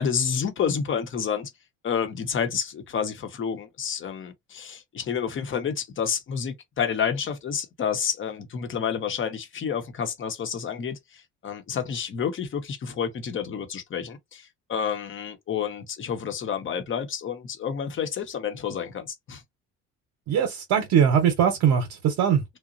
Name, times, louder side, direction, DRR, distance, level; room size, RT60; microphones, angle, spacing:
voice 1, 0.0-1.5 1.8-19.4, left 7 dB, 40° left, 0.9 m, -29 dB
voice 2, 20.3-22.4, right 8 dB, 75° right, 0.9 m, -21 dB
2.9 x 2.2 x 2.4 m
supercardioid pair, 90°, 30 cm